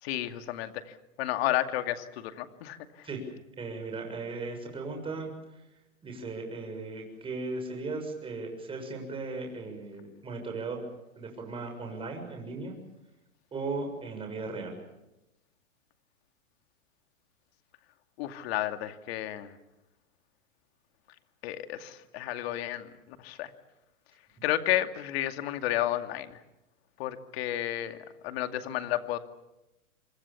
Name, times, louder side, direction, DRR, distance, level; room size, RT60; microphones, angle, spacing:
voice 1, 0.0-3.1 18.2-19.5 21.4-23.5 24.4-26.4 27.0-28.0 28.2-29.2, left 13 dB, 45° left, 8 dB, 2.4 m, -32 dB
voice 2, 3.6-5.6 6.0-10.8 11.1-12.7 13.5-14.8, right 3 dB, 10° right, 3 dB, 6.8 m, -37 dB
26.5 x 26.5 x 7.2 m, 0.93 s
hypercardioid pair, 150°, 43 cm